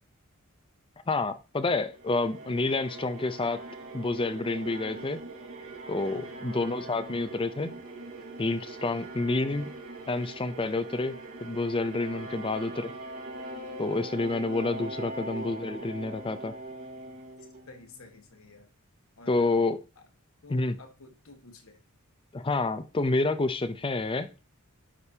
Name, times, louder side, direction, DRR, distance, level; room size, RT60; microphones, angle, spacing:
voice 1, 1.1-3.6 3.9-5.2 5.9-7.8 8.4-9.7 10.1-11.2 11.4-12.9 13.8-16.5 19.3-19.8 20.5-20.8 22.3-24.3, left 3 dB, 25° left, 0.5 m, -29 dB
sound 1, 1.9-18.2, right 2 dB, 70° right, 3.3 m, -42 dB
voice 2, 6.0-6.6 8.8-9.0 12.2-12.6 15.0-15.2 17.7-18.7 19.2-19.5 20.4-21.8, left 3 dB, 75° left, 1.6 m, -52 dB
11.0 x 5.2 x 2.8 m
head